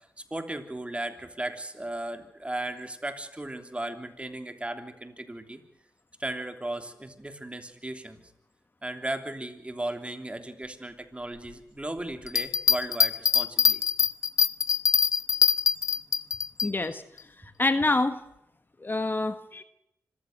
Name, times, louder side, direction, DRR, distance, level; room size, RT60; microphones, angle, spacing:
voice 1, 0.0-5.6 6.2-8.2 8.8-13.8, right 1 dB, 20° right, 8 dB, 3.2 m, -36 dB
Bell, 12.3-16.7 17.2-17.3, left 6 dB, 70° left, 0.7 m, -23 dB
voice 2, 16.6-17.0 17.6-18.2 18.8-19.6, left 2 dB, 35° left, 11 dB, 1.4 m, -26 dB
25.5 x 15.0 x 7.9 m, 0.81 s
cardioid pair, 45°, 6 cm